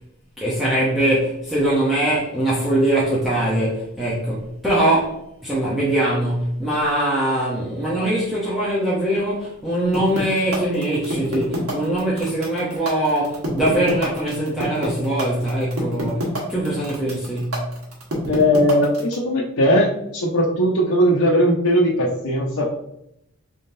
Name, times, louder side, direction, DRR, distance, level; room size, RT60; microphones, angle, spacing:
voice 1, 0.4-17.6, right 1 dB, ahead, 0.8 m, -22 dB
sound 1, 9.9-19.1, right 1 dB, 80° right, 1.3 m, -27 dB
voice 2, 18.3-19.9 20.1-22.7, equal, 75° left, 0.8 m, -18 dB
4.3 x 3.5 x 2.7 m
head